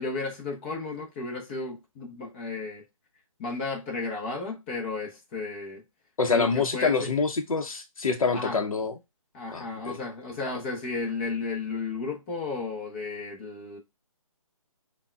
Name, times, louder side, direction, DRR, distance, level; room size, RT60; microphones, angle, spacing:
voice 1, 0.0-2.8 3.4-5.8 6.3-7.1 8.3-8.6 9.3-13.8, left 3 dB, 20° left, 0.6 m, -33 dB
voice 2, 6.2-8.9 9.5-10.0, left 4 dB, 80° left, 0.7 m, -26 dB
5.4 x 2.2 x 2.2 m
figure-of-eight pair, 150°, 18 cm